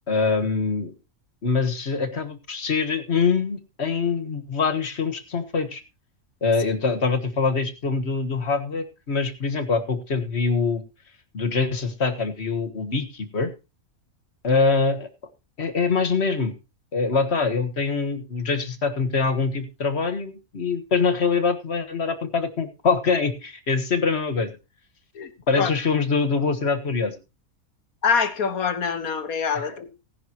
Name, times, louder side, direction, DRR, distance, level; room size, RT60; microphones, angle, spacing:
voice 1, 0.1-0.9 1.4-5.8 6.4-10.8 11.3-13.5 14.4-15.1 15.6-16.5 16.9-24.5 25.5-27.2 29.5-30.0, left 4 dB, 50° left, 1.7 m, -24 dB
voice 2, 28.0-29.9, left 6 dB, 80° left, 1.8 m, -24 dB
16.5 x 11.0 x 2.9 m
omnidirectional pair, 1.5 m